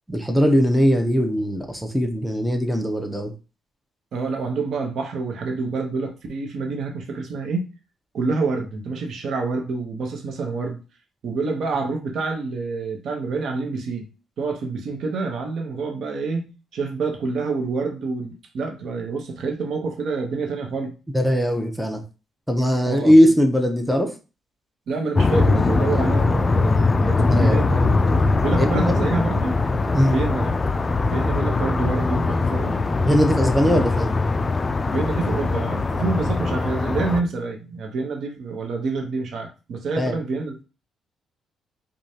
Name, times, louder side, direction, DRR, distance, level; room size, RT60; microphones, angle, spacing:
voice 1, 0.1-3.3 21.1-22.0 22.5-24.1 27.3-27.6 28.7-29.1 29.9-30.1 33.0-34.1 40.0-40.2, equal, ahead, 0.7 m, -20 dB
voice 2, 4.1-7.7 8.1-10.8 11.2-14.1 14.4-20.9 22.8-23.2 24.9-28.0 28.4-29.5 30.0-30.5 31.0-32.9 33.6-33.8 34.9-40.6, right 4 dB, 65° right, 0.9 m, -27 dB
sound 1, 25.2-37.2, left 3 dB, 25° left, 0.3 m, -21 dB
4.8 x 2.4 x 2.8 m
cardioid pair, 90°, 0 cm